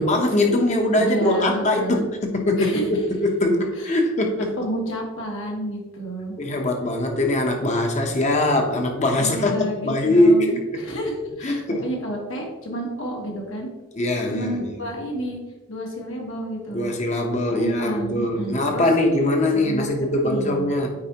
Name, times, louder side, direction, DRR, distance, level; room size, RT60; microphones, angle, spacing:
voice 1, 0.0-2.1 2.3-4.5 6.4-10.6 11.4-11.9 14.0-14.7 16.7-20.9, left 1 dB, 35° left, 3 dB, 0.9 m, -21 dB
voice 2, 1.0-2.1 2.6-2.9 3.7-4.0 4.6-6.3 9.2-13.7 14.3-15.4 15.7-16.9 17.5-18.9 19.5-19.9 20.2-20.7, right 1 dB, 75° left, 0 dB, 1.6 m, -30 dB
8.6 x 4.7 x 2.9 m, 1.2 s
head